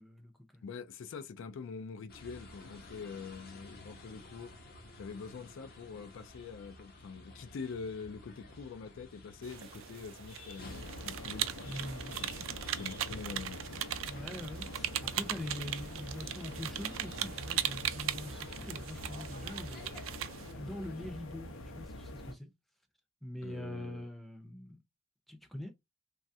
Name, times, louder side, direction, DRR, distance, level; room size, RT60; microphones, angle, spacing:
voice 1, 0.0-0.6 11.7-12.2 14.1-19.9 20.5-22.5 23.2-24.8 25.3-25.7, left 1 dB, ahead, 0.5 m, -44 dB
voice 2, 0.6-4.5 4.9-11.8 12.2-13.7 23.4-24.1, left 5 dB, 65° left, 0.3 m, -45 dB
sound 1, 2.1-21.2, left 1 dB, 50° left, 0.8 m, -52 dB
sound 2, 9.4-20.5, right 12 dB, 75° right, 0.4 m, -39 dB
sound 3, 10.6-22.3, left 1 dB, 90° left, 0.7 m, -46 dB
3.1 x 2.3 x 2.6 m
head